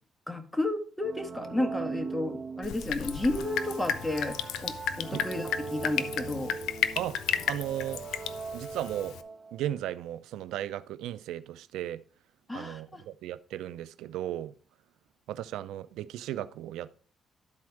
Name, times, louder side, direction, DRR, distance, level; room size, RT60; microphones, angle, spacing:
voice 1, 0.3-4.7 5.0-6.5 12.5-13.0, left 2 dB, 10° left, 1.5 m, -32 dB
sound 1, 1.0-9.6, right 5 dB, 45° right, 1.5 m, -40 dB
Drip, 2.6-9.2, left 9 dB, 85° left, 0.6 m, -34 dB
voice 2, 7.5-8.0 8.5-9.1 9.5-12.0 12.5-14.5 15.3-16.9, right 12 dB, 90° right, 0.4 m, -35 dB
12.0 x 4.3 x 4.7 m
cardioid pair, 90°, 0 cm